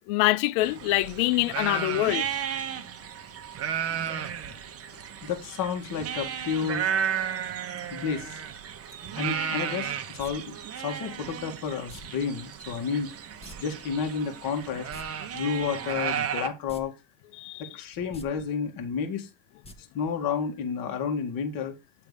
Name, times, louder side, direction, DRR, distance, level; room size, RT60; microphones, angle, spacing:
voice 1, 0.1-2.3 17.4-17.6, left 17 dB, 55° left, 0.6 m, -25 dB
sound 1, 0.6-16.5, right 8 dB, 30° right, 0.9 m, -33 dB
voice 2, 5.2-6.9 7.9-8.4 9.2-13.1 13.6-14.9 15.3-16.9 17.6-19.3 19.8-21.7, left 6 dB, 40° left, 1.7 m, -31 dB
sound 2, 10.2-10.3 11.9-12.0 13.4-13.6 13.8-13.9 14.8-15.0 16.7-16.8 17.2-17.3 18.0-18.3 19.6-19.7 20.1-20.2, left 1 dB, 10° left, 1.0 m, -44 dB
8.0 x 3.4 x 5.0 m
hypercardioid pair, 100°, 50 cm